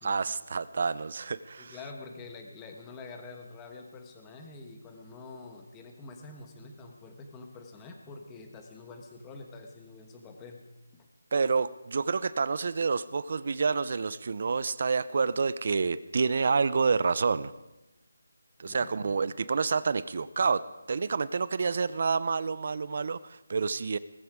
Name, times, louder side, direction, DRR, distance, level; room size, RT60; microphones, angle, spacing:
voice 1, 0.0-1.7 11.3-17.5 18.6-24.0, right 5 dB, 40° right, 17 dB, 0.4 m, -28 dB
voice 2, 1.6-10.6 10.9-11.1 18.7-19.1, left 3 dB, 10° left, 4 dB, 1.2 m, -46 dB
18.5 x 14.5 x 4.8 m, 1.0 s
figure-of-eight pair, 175°, 0 cm